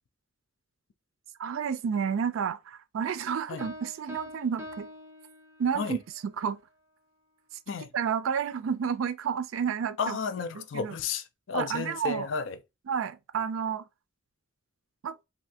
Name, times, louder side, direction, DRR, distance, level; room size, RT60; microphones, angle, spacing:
voice 1, 1.4-4.9 5.6-6.6 7.9-10.2 10.5-11.0 11.5-12.3 12.9-13.8 15.0-15.1, right 7 dB, 80° right, 0.4 m, -30 dB
Piano, 3.6-6.0, left 1 dB, 15° right, 0.8 m, -44 dB
voice 2, 10.0-12.6, left 5 dB, 65° left, 0.4 m, -32 dB
3.2 x 2.6 x 2.7 m
head